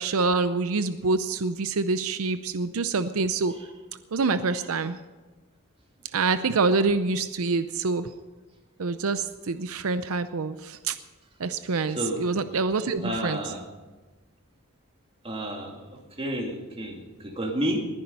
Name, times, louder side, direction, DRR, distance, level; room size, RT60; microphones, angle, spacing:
voice 1, 0.0-3.5 4.1-5.0 6.1-8.1 8.8-11.0 11.4-13.4, right 4 dB, 80° right, 12 dB, 0.6 m, -26 dB
voice 2, 11.9-12.2 13.0-13.6 15.2-15.8 16.2-17.8, equal, 25° right, 2 dB, 2.3 m, -30 dB
20.5 x 10.5 x 5.5 m, 1.2 s
head